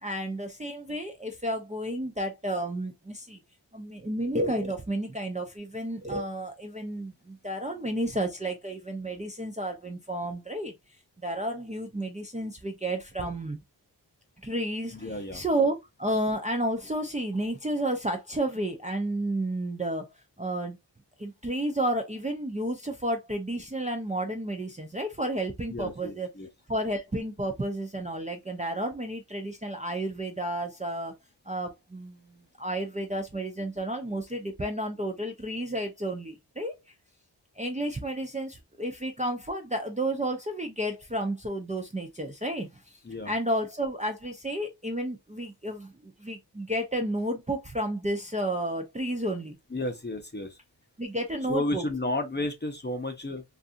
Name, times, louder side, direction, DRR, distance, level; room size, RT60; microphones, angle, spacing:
voice 1, 0.0-3.4 3.7-10.7 11.2-13.6 14.4-20.1 20.4-20.8 21.2-26.3 26.7-31.1 31.5-36.8 37.6-42.8 43.3-49.6 51.0-51.8, right 1 dB, 15° right, 0.5 m, -31 dB
voice 2, 14.9-15.4 25.7-26.5 43.0-43.3 49.7-50.6 51.5-53.4, left 2 dB, 25° left, 0.7 m, -32 dB
2.6 x 2.4 x 2.5 m
wide cardioid pair, 55°, 44 cm